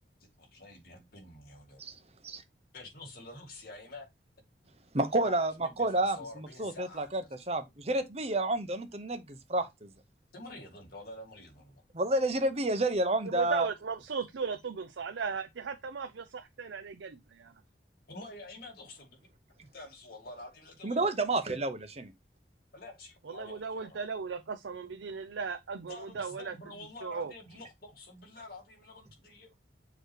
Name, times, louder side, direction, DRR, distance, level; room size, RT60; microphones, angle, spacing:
voice 1, 0.2-1.8 2.7-4.1 5.2-7.1 10.3-11.8 18.1-19.2 19.6-21.0 22.7-24.0 25.9-29.5, left 2 dB, 55° left, 2.6 m, -48 dB
voice 2, 4.9-5.5 5.8-6.2 6.6-7.2 7.5-9.9 11.9-13.7 20.8-22.1, right 2 dB, 35° right, 0.9 m, -29 dB
voice 3, 13.2-17.5 23.2-26.5 27.0-27.3, right 5 dB, 90° right, 0.6 m, -37 dB
6.8 x 3.1 x 4.7 m
head